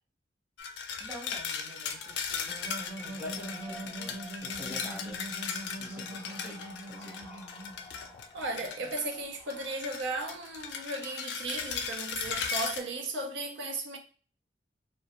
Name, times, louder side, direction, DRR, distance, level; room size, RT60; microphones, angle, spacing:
sound 1, 0.6-9.1 9.5-12.8, left 6 dB, 70° left, 0.4 m, -37 dB
voice 1, 1.0-2.5 3.0-5.2 5.8-7.4, left 1 dB, 10° right, 0.8 m, -46 dB
sound 2, 1.6-11.3, left 1 dB, 10° left, 0.5 m, -54 dB
sound 3, 2.4-8.1, right 1 dB, 45° right, 1.1 m, -43 dB
voice 2, 8.3-14.0, right 2 dB, 80° right, 0.6 m, -36 dB
2.4 x 2.2 x 2.8 m
head